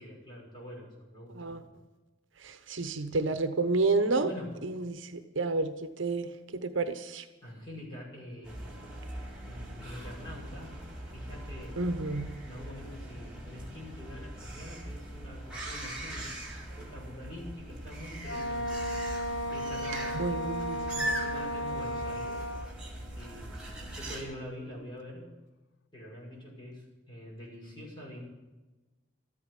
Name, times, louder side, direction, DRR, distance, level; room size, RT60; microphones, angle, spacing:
voice 1, 0.0-1.5 4.2-4.5 7.4-8.7 9.4-10.7 11.0-11.8 12.4-16.3 16.8-18.8 19.5-20.2 20.9-22.4 23.1-25.3 25.9-28.2, left 1 dB, 25° left, -4 dB, 6.2 m, -45 dB
voice 2, 2.4-4.3 4.6-7.2 11.8-12.3 20.1-21.1, right 3 dB, 65° right, 9 dB, 0.9 m, -30 dB
sound 1, 8.4-24.2, right 1 dB, 5° right, 3.4 m, -40 dB
Wind instrument woodwind instrument, 18.2-22.8, equal, 60° left, 0.8 m, -34 dB
13.5 x 8.7 x 9.7 m, 1.1 s
head